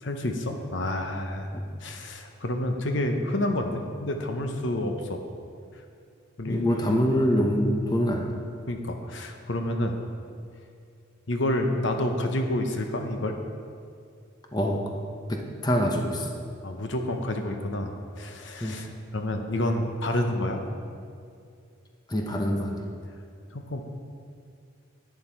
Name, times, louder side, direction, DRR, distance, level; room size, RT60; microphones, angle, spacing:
voice 1, 0.0-1.5 1.8-5.2 6.4-7.0 8.7-9.9 11.3-13.4 16.6-20.6 23.5-23.8, left 1 dB, 65° left, 4 dB, 0.9 m, -29 dB
voice 2, 6.4-8.4 14.5-14.8 15.3-16.3 18.6-18.7 22.1-22.8, equal, 20° left, 2 dB, 0.8 m, -25 dB
11.0 x 9.4 x 4.5 m, 2.3 s
head